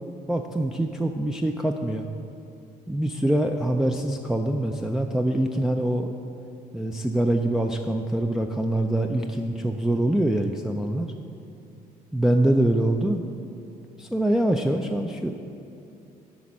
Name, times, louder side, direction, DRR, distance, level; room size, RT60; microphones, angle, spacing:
voice 1, 0.3-2.1 2.9-6.1 6.7-11.1 12.1-13.2 14.0-15.3, right 1 dB, 5° right, 2 dB, 0.3 m, -24 dB
11.0 x 4.2 x 6.1 m, 2.8 s
cardioid pair, 110°, 17 cm